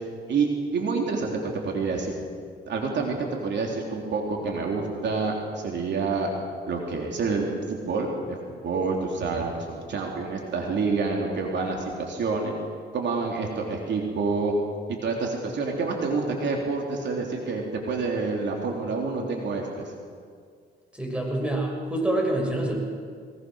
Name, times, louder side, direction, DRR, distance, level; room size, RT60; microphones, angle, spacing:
voice 1, 0.3-1.4 1.6-2.2 2.7-6.3 6.7-12.5 12.9-14.5 15.0-19.9, right 4 dB, 65° right, 0 dB, 3.4 m, -28 dB
voice 2, 20.9-22.8, right 1 dB, 5° right, -1 dB, 6.6 m, -26 dB
22.5 x 21.0 x 6.4 m, 2.1 s
cardioid pair, 90°, 20 cm